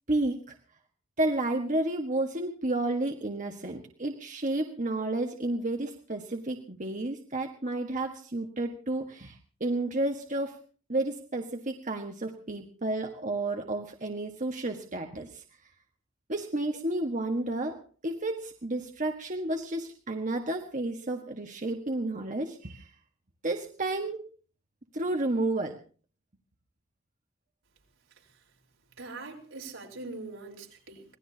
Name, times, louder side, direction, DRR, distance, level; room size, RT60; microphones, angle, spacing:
voice 1, 0.1-0.6 1.2-9.3 9.6-10.6 10.9-15.4 16.3-22.9 23.4-24.3 24.9-25.8, right 2 dB, 40° right, 3 dB, 1.5 m, -31 dB
voice 2, 29.0-31.0, right 3 dB, 80° right, 1 dB, 4.3 m, -42 dB
25.5 x 19.0 x 2.8 m, 0.40 s
head